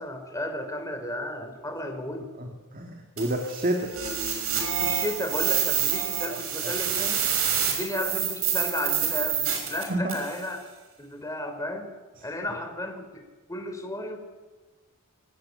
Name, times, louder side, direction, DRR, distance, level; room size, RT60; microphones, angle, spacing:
voice 1, 0.0-2.3 4.8-7.3 7.7-10.6 11.0-12.0 12.2-13.2 13.5-14.2, left 1 dB, 15° left, 5 dB, 3.3 m, -33 dB
voice 2, 2.4-3.9 6.3-6.4 6.6-6.7 9.9-10.2, right 1 dB, 40° right, 3 dB, 2.1 m, -29 dB
sound 1, 3.2-10.4, right 8 dB, 70° right, 6.1 m, -27 dB
23.5 x 16.5 x 9.3 m, 1.3 s
head